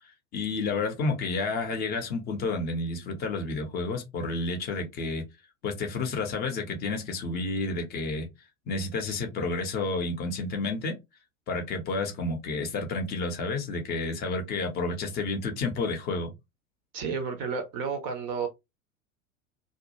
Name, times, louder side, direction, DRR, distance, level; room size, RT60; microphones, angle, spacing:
voice 1, 0.3-5.2 5.6-8.3 8.7-11.0 11.5-16.3, left 3 dB, 25° left, 0.6 m, -30 dB
voice 2, 16.9-18.5, right 5 dB, 30° right, 0.5 m, -31 dB
2.3 x 2.1 x 2.8 m
figure-of-eight pair, 85°, 41 cm